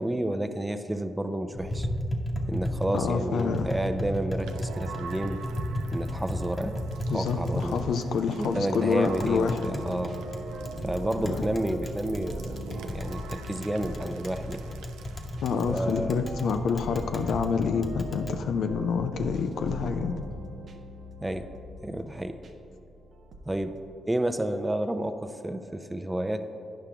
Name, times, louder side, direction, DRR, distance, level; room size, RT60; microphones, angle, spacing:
voice 1, 0.0-1.9 2.5-5.4 5.9-7.9 8.3-10.1 10.8-14.6 15.7-16.2 21.2-21.5 21.8-22.3 23.5-23.7 24.1-26.4, right 1 dB, 15° right, 9 dB, 0.6 m, -30 dB
Tap, 1.5-18.4, equal, 40° left, 1.0 m, -35 dB
voice 2, 2.9-3.7 7.1-9.6 11.3-11.4 15.4-20.2, left 5 dB, 70° left, 7 dB, 0.4 m, -27 dB
sound 1, 4.3-16.2, right 6 dB, 75° right, 0.4 m, -45 dB
sound 2, 7.2-23.9, right 1 dB, 55° right, 0.8 m, -42 dB
9.8 x 5.6 x 3.6 m, 2.8 s
hypercardioid pair, 40°, 0 cm